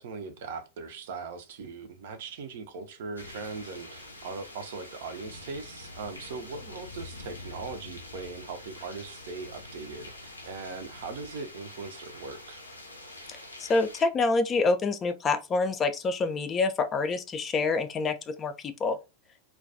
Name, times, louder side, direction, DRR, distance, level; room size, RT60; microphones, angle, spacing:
voice 1, 0.0-12.6, right 4 dB, 55° right, 0.5 m, -40 dB
sound 1, 3.2-14.0, left 2 dB, 80° left, 0.5 m, -45 dB
voice 2, 13.6-18.5 18.8-19.0, left 3 dB, 25° left, 0.3 m, -26 dB
2.2 x 2.2 x 2.5 m
figure-of-eight pair, 90°, 0 cm